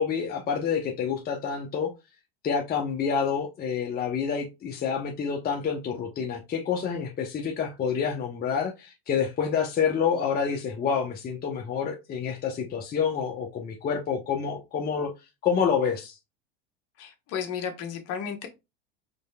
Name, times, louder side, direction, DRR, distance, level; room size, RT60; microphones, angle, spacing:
voice 1, 0.0-1.9 2.4-15.1 15.4-16.1, left 6 dB, 30° left, 0.8 m, -28 dB
voice 2, 17.0-18.5, left 7 dB, 55° left, 1.2 m, -33 dB
5.1 x 3.2 x 2.3 m
hypercardioid pair, 95°, 30 cm